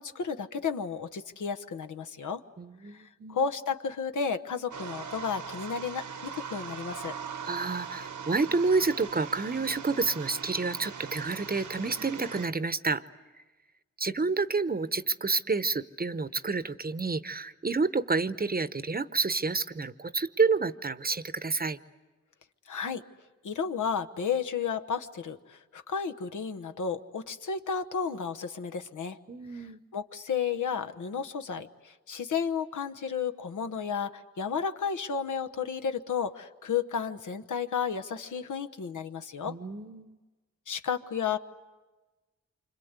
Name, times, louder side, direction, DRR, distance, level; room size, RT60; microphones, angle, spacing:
voice 1, 0.0-2.4 2.9-7.1 22.7-23.0 23.4-29.2 29.5-29.7 29.9-39.6 40.7-41.4, left 6 dB, 85° left, 8 dB, 1.0 m, -32 dB
voice 2, 2.6-3.4 7.4-13.0 14.0-21.8 29.3-29.8 39.5-40.2, right 4 dB, 30° right, 13 dB, 0.8 m, -29 dB
sound 1, 4.7-12.5, right 6 dB, 90° right, 1.2 m, -40 dB
27.5 x 25.5 x 8.1 m, 1.2 s
cardioid pair, 70°, 30 cm